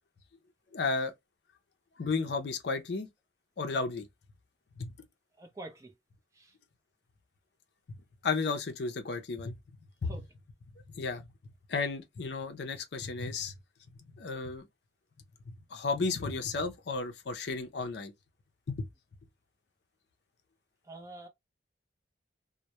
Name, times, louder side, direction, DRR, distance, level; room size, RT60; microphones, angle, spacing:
voice 1, 0.7-1.1 2.0-3.1 3.6-4.1 4.8-4.9 7.9-9.6 10.0-10.2 10.9-11.3 11.7-13.5 14.1-14.6 15.5-18.1 18.7-18.9, left 4 dB, 65° left, 0.5 m, -33 dB
voice 2, 5.4-5.9 6.3-6.5 10.0-10.2 20.8-21.3, right 2 dB, 15° right, 0.5 m, -46 dB
2.1 x 2.1 x 2.8 m
head